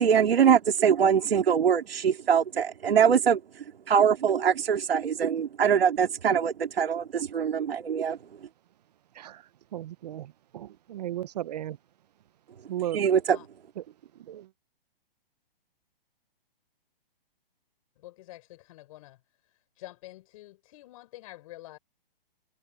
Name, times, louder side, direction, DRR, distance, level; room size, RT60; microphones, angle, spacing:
voice 1, 0.0-8.2 12.9-13.4, right 7 dB, 75° right, 2.8 m, -23 dB
voice 2, 9.7-11.8 12.7-13.0 13.8-13.9 14.3-14.5, right 12 dB, 45° right, 0.9 m, -35 dB
voice 3, 18.0-19.2 19.8-21.8, left 17 dB, 35° left, 5.5 m, -47 dB
hypercardioid pair, 160°, 30 cm